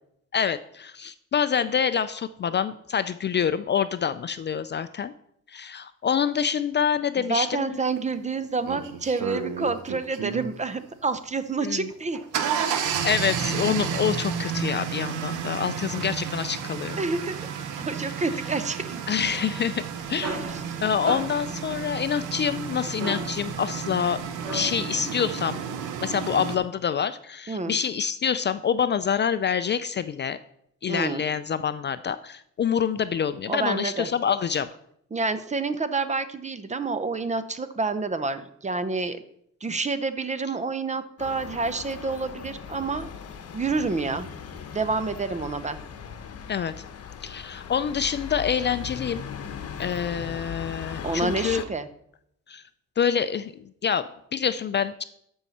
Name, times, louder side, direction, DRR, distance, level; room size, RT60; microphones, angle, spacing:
voice 1, 0.3-5.1 5.5-7.8 11.6-11.9 13.0-17.0 19.1-19.8 20.1-20.3 20.8-24.2 24.5-25.6 26.0-30.4 30.8-34.7 46.5-46.7 47.2-49.2 49.8-51.6 52.5-52.6 53.0-53.5 53.8-55.0, left 7 dB, 35° left, 13 dB, 0.4 m, -26 dB
voice 2, 7.2-12.2 17.0-17.5 17.8-19.0 20.3-20.6 27.5-27.8 30.9-31.2 33.5-34.1 35.1-39.2 39.6-43.1 43.5-44.3 44.7-45.8 51.0-51.9, right 3 dB, 25° right, 12 dB, 0.7 m, -28 dB
sound 1, 8.0-8.1 8.6-10.5 11.9-26.6, right 7 dB, 90° right, 1.0 m, -32 dB
sound 2, 19.9-25.0, right 2 dB, 55° right, 2.5 m, -37 dB
sound 3, 41.2-51.7, left 7 dB, 55° left, 1.1 m, -38 dB
13.5 x 5.5 x 4.2 m, 0.72 s
cardioid pair, 90°, 30 cm